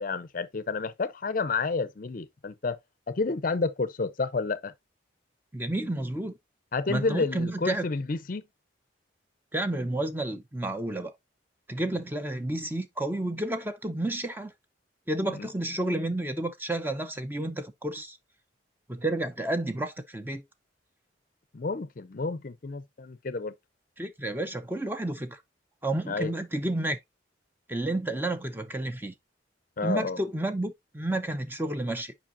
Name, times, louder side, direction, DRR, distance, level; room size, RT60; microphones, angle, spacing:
voice 1, 0.0-2.8 3.1-4.7 6.7-8.4 11.9-12.0 15.3-15.5 21.5-23.5 26.1-26.3 29.8-30.2, left 4 dB, 45° left, 0.5 m, -30 dB
voice 2, 5.5-6.3 6.9-7.9 9.5-11.1 11.7-14.5 15.1-18.2 18.9-20.4 24.0-25.4 25.8-27.0 27.7-29.1 29.8-32.1, right 1 dB, 10° right, 0.5 m, -31 dB
7.4 x 5.2 x 2.5 m
head